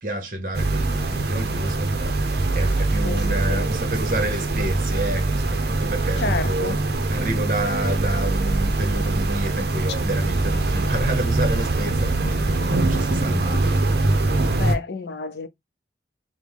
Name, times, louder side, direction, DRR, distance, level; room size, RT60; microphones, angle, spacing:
voice 1, 0.0-6.8 7.1-14.0, right 1 dB, 45° right, 1.2 m, -29 dB
sound 1, 0.5-14.8, right 2 dB, 65° right, 0.7 m, -23 dB
voice 2, 3.0-3.8 6.2-6.8 9.9-10.0 14.6-15.5, left 4 dB, 70° left, 0.5 m, -30 dB
5.0 x 2.2 x 3.3 m
head